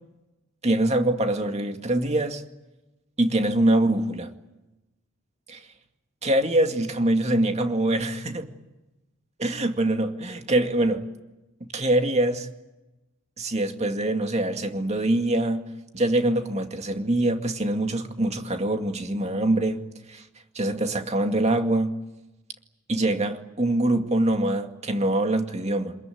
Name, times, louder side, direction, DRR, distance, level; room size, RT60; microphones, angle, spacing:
voice 1, 0.6-2.4 3.2-4.3 5.5-5.6 6.2-8.5 9.4-11.0 11.6-12.5 13.4-15.6 15.9-19.8 20.1-20.2 20.5-22.0 22.9-26.0, right 1 dB, 35° right, 2.2 m, -24 dB
26.5 x 21.5 x 9.4 m
head